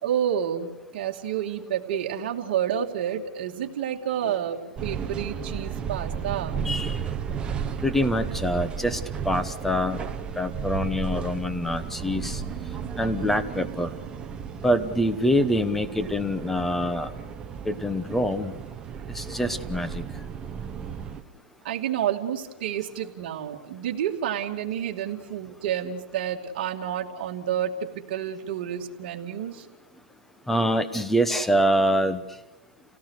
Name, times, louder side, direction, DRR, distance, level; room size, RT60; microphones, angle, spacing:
voice 1, 0.0-6.6 21.6-29.7, right 9 dB, 50° right, 1 dB, 2.5 m, -29 dB
sound 1, 4.8-21.2, right 7 dB, 15° right, 1.2 m, -34 dB
voice 2, 6.6-7.0 7.8-9.0 9.2-10.0 10.4-12.4 13.0-13.9 14.6-17.1 17.6-18.5 19.1-20.0 30.5-32.2, equal, 5° left, 11 dB, 1.1 m, -25 dB
29.5 x 17.5 x 6.6 m, 0.99 s
hypercardioid pair, 155°, 6 cm